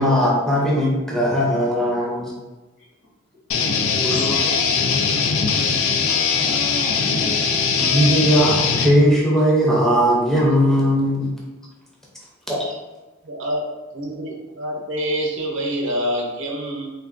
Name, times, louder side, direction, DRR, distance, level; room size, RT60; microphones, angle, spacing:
voice 1, 0.0-2.3 4.0-4.4 7.1-7.2 7.8-11.3 12.5-12.7, equal, ahead, -5 dB, 0.5 m, -19 dB
sound 1, 3.5-8.9, left 5 dB, 85° left, 0.3 m, -20 dB
voice 2, 3.7-7.1, left 2 dB, 70° left, -7 dB, 1.4 m, -38 dB
voice 3, 13.2-16.9, equal, 65° right, 0 dB, 0.6 m, -26 dB
3.3 x 2.2 x 2.4 m, 1.1 s
head